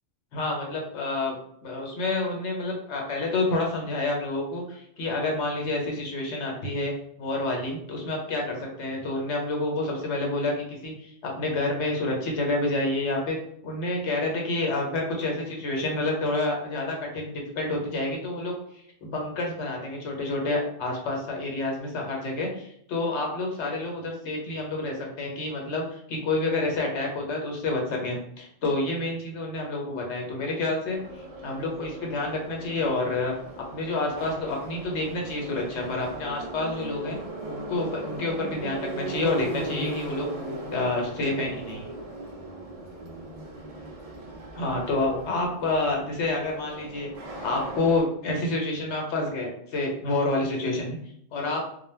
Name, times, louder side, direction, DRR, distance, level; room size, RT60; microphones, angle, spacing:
voice 1, 0.3-1.4 1.6-13.4 13.6-31.0 31.4-37.2 37.4-40.3 40.7-41.9 44.6-47.1 47.4-51.0 51.3-51.6, left 2 dB, 75° left, 0 dB, 1.0 m, -28 dB
Subway metro underground, 30.9-48.0, right 2 dB, 50° right, 0.4 m, -38 dB
2.2 x 2.2 x 3.2 m, 0.69 s
omnidirectional pair, 1.2 m